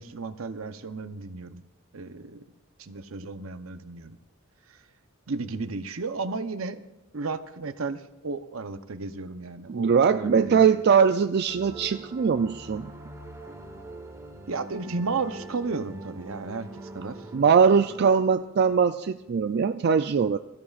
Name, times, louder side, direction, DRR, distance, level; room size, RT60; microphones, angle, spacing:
voice 1, 0.0-1.6 1.9-2.4 2.8-4.2 4.7-4.8 5.3-6.8 7.1-10.7 14.5-16.7 16.9-17.2 18.0-18.1, right 4 dB, 75° right, 10 dB, 0.8 m, -33 dB
voice 2, 9.7-12.9 17.3-20.4, right 6 dB, 50° right, 9 dB, 0.4 m, -21 dB
sound 1, 11.5-18.0, right 2 dB, 15° right, 1.1 m, -43 dB
22.0 x 14.0 x 2.4 m, 1.0 s
head